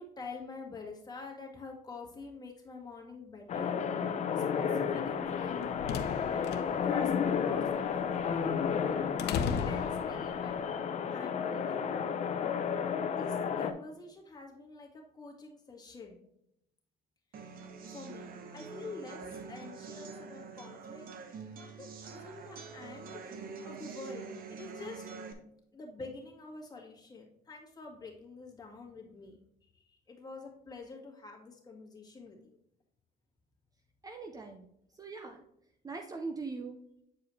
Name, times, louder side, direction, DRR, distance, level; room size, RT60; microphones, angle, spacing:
voice 1, 0.0-3.9 4.3-5.7 6.2-9.1 9.6-10.6 11.1-11.8 13.2-16.2 17.4-17.5 17.9-21.1 21.5-23.2 23.6-25.1 25.7-29.4 29.7-32.4, left 3 dB, 25° left, 0 dB, 1.9 m, -46 dB
sound 1, 3.5-13.7, left 7 dB, 45° left, 0.6 m, -32 dB
sound 2, 5.3-10.6, left 6 dB, 80° left, 0.7 m, -38 dB
sound 3, 17.3-25.3, right 5 dB, 60° right, 1.0 m, -45 dB
voice 2, 34.0-34.7 34.9-35.4 35.8-36.8, right 4 dB, 20° right, 4 dB, 0.6 m, -41 dB
8.3 x 4.7 x 3.2 m, 0.77 s
cardioid pair, 110°, 17 cm